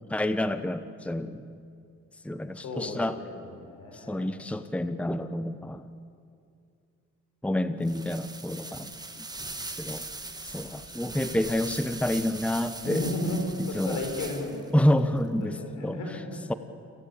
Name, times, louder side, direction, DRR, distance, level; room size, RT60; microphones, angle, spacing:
voice 1, 0.1-1.4 2.2-3.2 3.9-5.9 7.4-8.9 9.8-10.0 10.4-13.0 13.7-14.0 14.7-15.6 15.8-16.0 16.5-16.6, left 1 dB, 5° left, 11 dB, 0.9 m, -28 dB
voice 2, 2.6-4.3 12.8-14.9 15.2-16.6, left 1 dB, 75° left, 3 dB, 5.2 m, -34 dB
sound 1, 7.8-14.7, right 2 dB, 15° right, 1.9 m, -40 dB
27.0 x 16.0 x 8.8 m, 2.4 s
cardioid pair, 90°, 30 cm